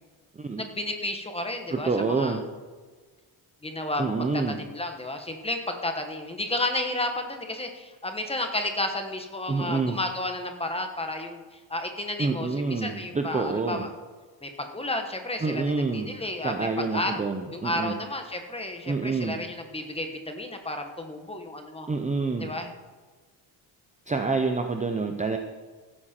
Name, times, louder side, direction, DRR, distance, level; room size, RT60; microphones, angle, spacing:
voice 1, 0.6-2.4 3.6-13.9 14.4-17.2 17.5-21.9 22.4-22.7, left 2 dB, 10° left, 5 dB, 1.3 m, -32 dB
voice 2, 1.7-2.4 4.0-4.6 9.5-10.0 12.2-13.9 15.4-16.1 16.4-17.9 18.9-19.4 21.9-22.5 24.1-25.4, right 4 dB, 15° right, 5 dB, 0.6 m, -27 dB
15.5 x 8.8 x 4.4 m, 1.4 s
cardioid pair, 150°, 48 cm